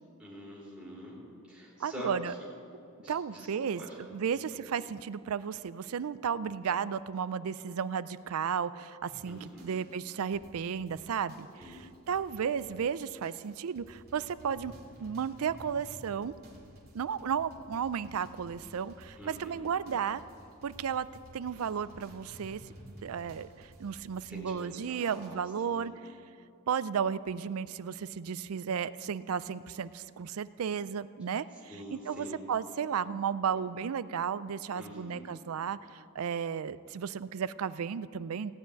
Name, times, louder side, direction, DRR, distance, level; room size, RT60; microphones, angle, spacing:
voice 1, 0.2-1.2 1.5-2.4 3.0-3.5 3.8-3.9 4.3-4.6 9.2-9.7 11.6-11.8 19.2-19.6 24.3-26.0 31.7-32.4 34.7-35.3, equal, 5° right, -7 dB, 4.0 m, -45 dB
voice 2, 1.8-2.3 3.1-3.8 4.1-14.7 15.0-16.3 16.9-20.2 20.6-21.1 21.3-22.6 23.0-25.9 26.7-31.4 31.9-38.5, right 7 dB, 70° right, 16 dB, 0.4 m, -34 dB
sound 1, 9.1-25.3, equal, 45° right, 2.6 m, -54 dB
16.5 x 6.4 x 9.3 m, 2.6 s
head